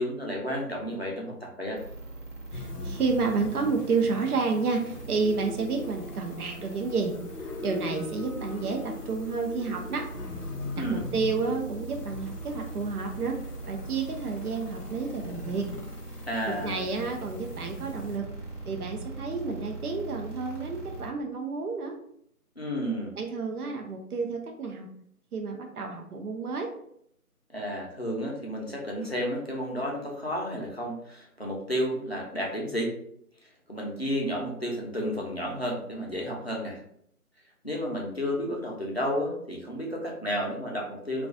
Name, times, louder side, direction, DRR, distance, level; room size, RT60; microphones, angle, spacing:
voice 1, 0.0-1.8 10.8-11.0 16.3-16.9 22.6-23.1 27.5-32.9 33.7-36.8 37.6-41.3, equal, 45° left, -2 dB, 0.5 m, -31 dB
sound 1, 1.8-21.1, right 2 dB, 55° right, 1.0 m, -41 dB
sound 2, 2.5-18.2, left 3 dB, 85° left, 0.6 m, -41 dB
voice 2, 2.5-7.1 7.6-10.1 10.8-13.4 13.6-15.7 16.5-18.2 18.7-21.9 23.2-24.9 25.3-26.7, right 4 dB, 75° right, 3 dB, 0.6 m, -30 dB
2.3 x 2.2 x 2.5 m, 0.70 s
figure-of-eight pair, 160°, 46 cm